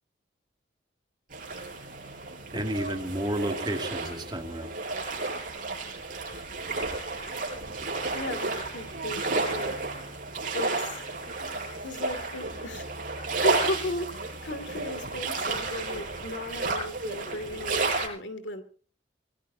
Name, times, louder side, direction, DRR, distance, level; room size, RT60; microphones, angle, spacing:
sound 1, 1.3-18.1, right 3 dB, 45° right, 8.0 m, -32 dB
voice 1, 2.5-4.7, right 1 dB, 25° right, 4 dB, 2.5 m, -31 dB
voice 2, 8.1-9.7 10.5-11.0 11.8-18.6, left 1 dB, 70° left, 9 dB, 2.7 m, -36 dB
26.0 x 18.0 x 2.9 m, 0.41 s
head